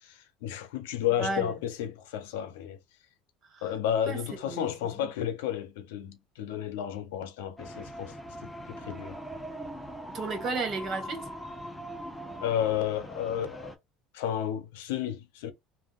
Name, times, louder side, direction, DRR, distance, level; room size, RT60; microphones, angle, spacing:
voice 1, 0.0-2.8 3.6-8.1 8.4-9.2 12.4-13.7 14.1-15.5, left 10 dB, 85° left, 0.7 m, -32 dB
voice 2, 1.2-1.5 3.5-3.6 4.1-4.7 10.1-11.3, right 3 dB, 45° right, 1.5 m, -33 dB
sound 1, 7.6-13.8, equal, 5° left, 0.8 m, -41 dB
3.5 x 2.4 x 2.4 m
supercardioid pair, 95°, 0 cm